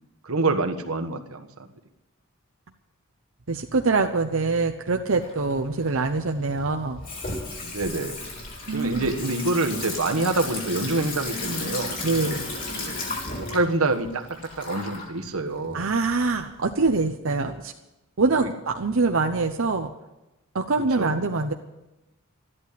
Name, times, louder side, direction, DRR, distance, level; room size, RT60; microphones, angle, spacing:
voice 1, 0.2-1.7 7.6-8.2 8.7-12.0 12.8-12.9 13.4-14.3 14.6-15.8 18.4-18.5 21.0-21.2, right 2 dB, 80° right, 5 dB, 1.5 m, -26 dB
voice 2, 3.5-7.0 8.7-9.1 12.0-12.5 15.7-17.7 18.2-19.9 20.5-21.5, right 3 dB, 65° right, 4 dB, 0.8 m, -24 dB
Water tap faucet / Sink (filling or washing), 5.2-16.9, left 2 dB, 40° left, 4.0 m, -35 dB
13.5 x 11.0 x 8.4 m, 0.98 s
head